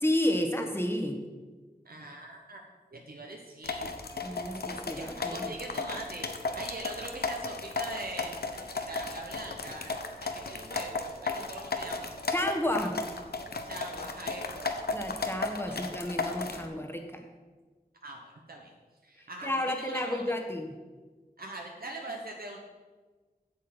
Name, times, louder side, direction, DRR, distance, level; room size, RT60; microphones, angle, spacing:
voice 1, 0.0-1.2 4.2-5.5 12.3-13.0 14.9-17.2 19.4-20.7, left 1 dB, 15° left, 4 dB, 1.2 m, -31 dB
voice 2, 1.8-2.6 2.9-3.9 4.7-12.1 13.6-14.7 15.6-15.9 18.0-18.7 19.0-20.2 21.4-22.6, right 2 dB, 70° right, 0 dB, 1.1 m, -42 dB
sound 1, 3.6-16.7, left 3 dB, 80° left, 0.8 m, -35 dB
8.0 x 7.3 x 6.0 m, 1.3 s
wide cardioid pair, 70°, 16 cm